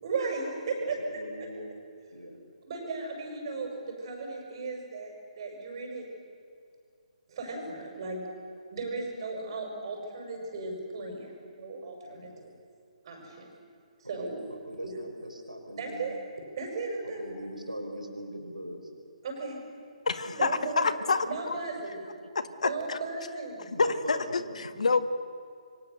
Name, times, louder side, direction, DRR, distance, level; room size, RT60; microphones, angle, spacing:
voice 1, 0.0-1.0 2.6-6.1 7.3-8.2 8.7-12.5 13.0-13.5 14.1-14.4 14.8-14.9 15.8-16.2 16.6-17.2 19.2-19.6 20.3-20.8 21.2-22.0 22.6-23.7, right 3 dB, 40° right, 2 dB, 6.4 m, -36 dB
voice 2, 0.8-1.7 2.1-2.4 12.1-12.4 13.2-13.3 14.2-14.4 14.7-16.1 17.0-18.8 20.2-20.3 21.3-22.1 22.4-22.5 23.7-24.5, equal, 85° right, 2 dB, 5.4 m, -40 dB
voice 3, 20.1-21.6 22.3-23.0 23.8-25.1, left 4 dB, 60° left, 12 dB, 1.2 m, -28 dB
27.0 x 24.0 x 6.8 m, 2.3 s
figure-of-eight pair, 135°, 4 cm